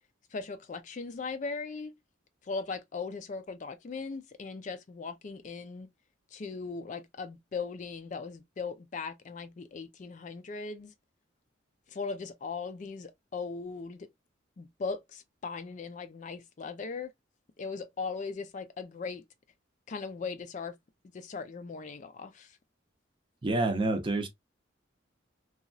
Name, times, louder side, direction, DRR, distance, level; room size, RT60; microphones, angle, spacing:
voice 1, 0.3-1.9 2.4-5.9 6.3-10.9 11.9-14.1 14.6-17.1 17.6-19.2 19.9-20.8 21.1-22.6, left 4 dB, 40° left, 0.3 m, -38 dB
voice 2, 23.4-24.3, right 2 dB, 25° right, 0.6 m, -28 dB
2.9 x 2.3 x 2.5 m
head